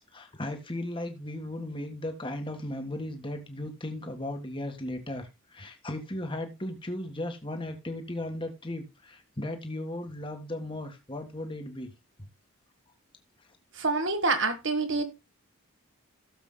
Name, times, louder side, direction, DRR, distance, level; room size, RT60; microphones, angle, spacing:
voice 1, 0.0-11.9, left 1 dB, 25° left, 1.6 m, -36 dB
voice 2, 13.8-15.0, right 3 dB, 55° right, 1.8 m, -26 dB
16.5 x 7.2 x 2.2 m
head